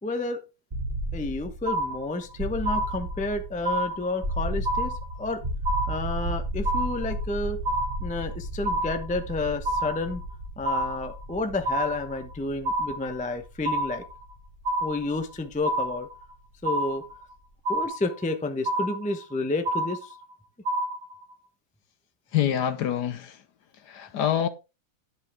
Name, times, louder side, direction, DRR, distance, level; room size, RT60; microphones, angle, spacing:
voice 1, 0.0-0.4 1.1-5.4 5.9-7.6 8.0-10.2 10.6-14.0 14.8-16.1 16.6-17.1 17.7-20.1, left 2 dB, 5° left, 0.5 m, -30 dB
sound 1, 0.7-16.5, right 1 dB, 25° right, 2.0 m, -34 dB
sound 2, 1.7-2.3 2.7-3.3 3.7-4.3 4.7-5.3 5.7-6.3 6.7-7.3 7.7-8.3 8.7-9.3 9.7-10.3 10.7-11.3 11.7-12.3 12.7-13.3 13.6-14.3 14.6-15.3 15.7-16.3 16.7-17.3 17.7-18.3 18.7-19.3 19.7-20.3 20.7-21.3, right 1 dB, 50° right, 1.8 m, -29 dB
voice 2, 22.3-23.4 23.9-24.5, left 10 dB, 65° left, 1.3 m, -26 dB
10.5 x 8.1 x 3.6 m
omnidirectional pair, 2.1 m